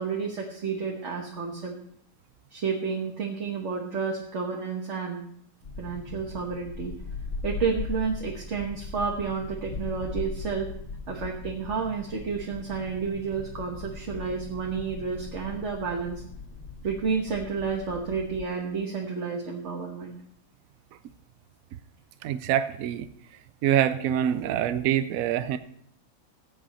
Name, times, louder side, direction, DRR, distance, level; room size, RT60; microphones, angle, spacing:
voice 1, 0.0-1.7 2.5-5.2 5.8-6.9 7.4-10.7 11.1-16.2 16.8-20.2, right 5 dB, 60° right, 0 dB, 1.6 m, -31 dB
sound 1, 5.6-18.5, left 4 dB, 45° left, 1.3 m, -39 dB
voice 2, 22.2-23.1 23.6-25.6, right 10 dB, 85° right, 12 dB, 1.0 m, -25 dB
16.5 x 8.0 x 4.2 m, 0.67 s
omnidirectional pair, 1.4 m